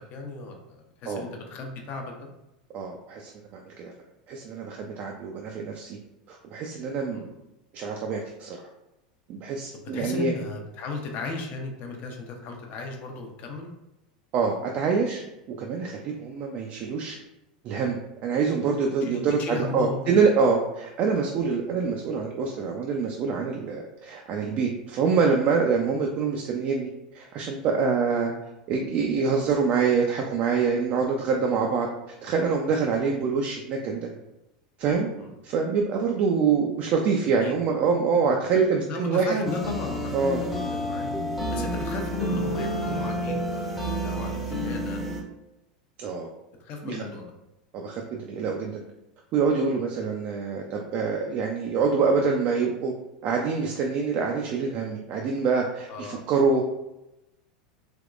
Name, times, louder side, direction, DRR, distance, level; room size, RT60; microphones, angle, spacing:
voice 1, 0.1-2.3 7.1-7.3 9.7-13.7 19.0-20.2 35.2-35.3 37.4-37.5 38.9-41.1 41.5-45.0 46.6-47.2 55.9-56.3, left 3 dB, 45° left, 2 dB, 0.7 m, -35 dB
voice 2, 2.7-3.9 4.3-6.0 6.3-7.3 7.7-8.6 9.3-10.3 14.3-15.2 15.5-17.2 17.6-26.9 27.1-28.3 28.7-31.9 32.2-34.1 34.8-35.1 35.4-39.4 40.1-40.4 41.5-41.7 46.0-46.3 46.8-47.0 47.7-48.8 49.3-52.9 53.2-56.6, right 5 dB, 45° right, 1 dB, 0.4 m, -25 dB
sound 1, 39.4-45.2, equal, ahead, 0.7 m, -30 dB
3.4 x 2.9 x 2.4 m, 0.93 s
hypercardioid pair, 90°, 4 cm